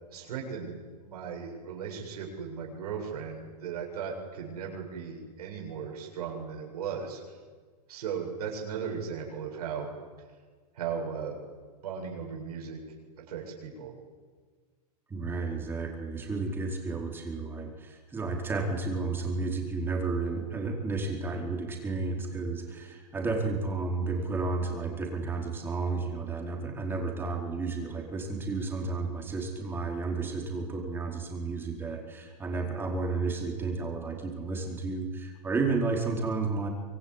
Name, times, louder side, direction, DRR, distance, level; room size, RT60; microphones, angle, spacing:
voice 1, 0.1-7.4 7.9-9.9 10.7-11.4 11.8-12.8 13.2-13.9, right 6 dB, 70° right, 0 dB, 7.9 m, -37 dB
voice 2, 15.1-36.7, right 3 dB, 10° right, 1 dB, 4.6 m, -32 dB
25.5 x 22.5 x 9.9 m, 1.5 s
supercardioid pair, 155°, 20 cm